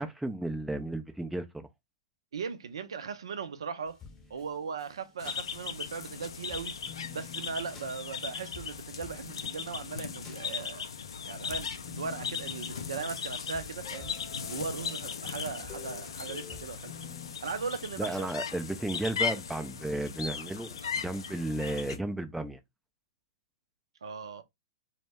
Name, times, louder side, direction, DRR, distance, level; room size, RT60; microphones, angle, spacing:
voice 1, 0.0-1.7 18.0-22.6, right 1 dB, 5° right, 0.3 m, -34 dB
voice 2, 2.3-4.0 4.3-6.9 7.1-10.9 11.2-14.2 14.4-17.0 17.4-18.4 20.8-20.9 24.0-24.4, right 5 dB, 75° right, 0.4 m, -38 dB
sound 1, 3.9-6.1 6.5-11.1 11.5-17.3, left 6 dB, 20° left, 0.7 m, -50 dB
sound 2, 5.2-22.0, left 6 dB, 75° left, 0.4 m, -38 dB
2.1 x 2.1 x 3.2 m
hypercardioid pair, 115°, 3 cm